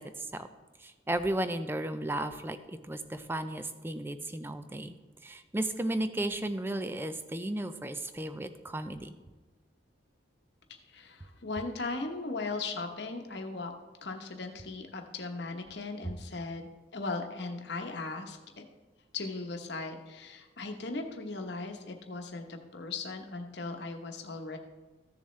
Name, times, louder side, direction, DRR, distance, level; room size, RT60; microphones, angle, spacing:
voice 1, 0.8-4.9 5.2-9.1, right 1 dB, 10° right, 10 dB, 0.4 m, -34 dB
voice 2, 10.7-13.7 14.0-18.6 19.1-24.6, left 3 dB, 60° left, 4 dB, 1.0 m, -38 dB
14.5 x 7.0 x 3.2 m, 1.2 s
head